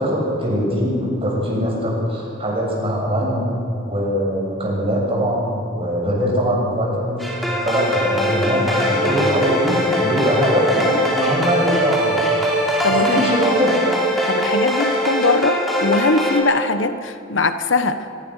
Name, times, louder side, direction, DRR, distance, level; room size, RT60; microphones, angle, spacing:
voice 1, 0.0-3.5 3.8-7.3 7.6-12.3 13.0-13.8, equal, 30° right, -3 dB, 7.7 m, -21 dB
sound 1, 7.2-16.4, equal, ahead, 5.2 m, -21 dB
voice 2, 12.8-13.3 14.3-18.1, left 3 dB, 80° left, 10 dB, 1.2 m, -21 dB
24.5 x 23.0 x 6.6 m, 2.4 s
head